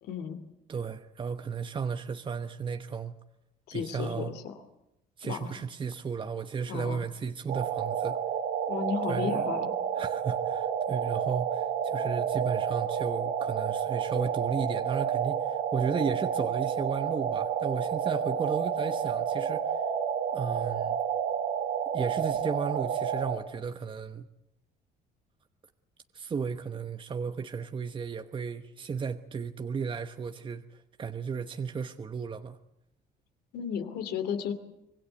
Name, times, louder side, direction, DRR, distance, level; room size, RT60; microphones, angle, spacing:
voice 1, 0.0-0.4 3.7-4.5 5.2-5.6 6.7-7.0 8.7-9.7 33.5-34.5, left 7 dB, 75° left, 2.8 m, -34 dB
voice 2, 0.7-3.1 3.7-4.3 5.2-8.2 9.1-9.5 10.0-19.8 20.3-21.0 21.9-24.3 26.1-32.6, right 6 dB, 30° right, 1.1 m, -34 dB
sound 1, 7.5-23.4, right 8 dB, 85° right, 4.0 m, -30 dB
25.5 x 20.5 x 8.2 m
cardioid pair, 110°, 17 cm